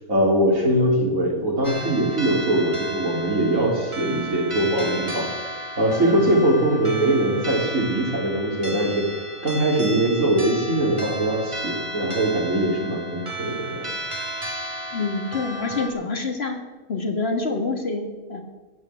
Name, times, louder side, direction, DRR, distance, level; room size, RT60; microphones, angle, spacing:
voice 1, 0.1-5.3 5.8-9.0 9.4-13.9 14.4-14.5, right 1 dB, 70° right, -1 dB, 3.9 m, -22 dB
sound 1, 1.6-15.9, equal, 20° right, 2.0 m, -33 dB
voice 2, 14.9-16.6 16.9-18.4, left 3 dB, 50° left, 4 dB, 2.0 m, -26 dB
15.0 x 8.8 x 8.4 m, 1.2 s
omnidirectional pair, 1.4 m